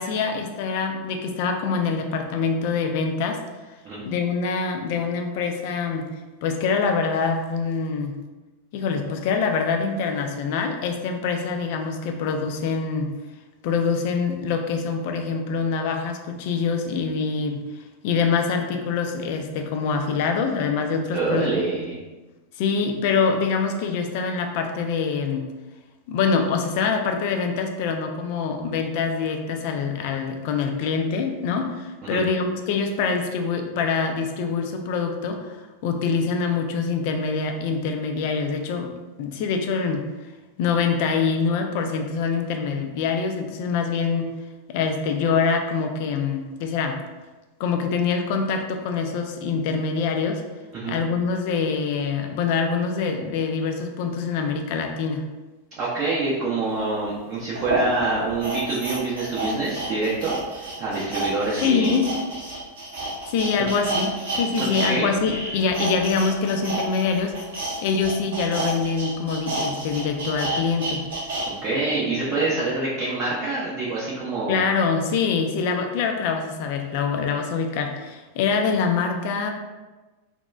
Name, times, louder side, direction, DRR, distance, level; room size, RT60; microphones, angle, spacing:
voice 1, 0.0-3.4 4.0-6.1 6.4-8.2 8.7-13.2 13.6-17.7 18.0-21.5 22.6-25.5 26.1-35.5 35.8-38.9 39.2-40.1 40.6-44.3 44.7-47.0 47.6-50.4 50.9-55.3 61.6-62.1 63.3-67.3 67.8-71.1 74.5-79.5, left 5 dB, 50° left, 4 dB, 0.3 m, -25 dB
voice 2, 21.1-22.0 32.0-32.2 50.7-51.0 55.8-62.0 64.6-65.1 71.6-74.6, right 3 dB, 35° right, -7 dB, 0.5 m, -26 dB
sound 1, 56.8-56.9 57.5-64.9 65.2-71.5 71.9-72.0, right 2 dB, 60° right, 0.8 m, -30 dB
2.9 x 2.0 x 2.3 m, 1.2 s
figure-of-eight pair, 90°, 0 cm